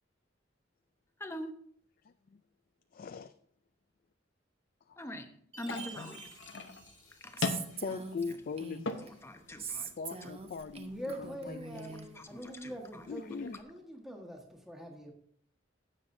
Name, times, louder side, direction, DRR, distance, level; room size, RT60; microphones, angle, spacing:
voice 1, 1.2-1.6 5.0-5.3 5.6-6.2 7.2-7.4 9.1-9.9 10.2-10.3 11.8-13.1, equal, 15° left, 6 dB, 0.9 m, -44 dB
voice 2, 2.9-3.3 4.9-5.1 5.6-6.2 7.7-9.2 10.0-11.9 13.1-13.6, left 5 dB, 50° left, 11 dB, 0.4 m, -41 dB
Chime, 5.5-8.0, right 7 dB, 70° right, 2.1 m, -52 dB
sound 1, 5.6-13.6, left 3 dB, 70° left, 0.8 m, -43 dB
Female speech woman speaking, 7.4-9.1 9.6-12.1, right 5 dB, 30° right, 0.8 m, -42 dB
voice 3, 10.9-15.1, equal, ahead, 0 dB, 1.5 m, -44 dB
15.0 x 7.4 x 2.7 m, 0.63 s
head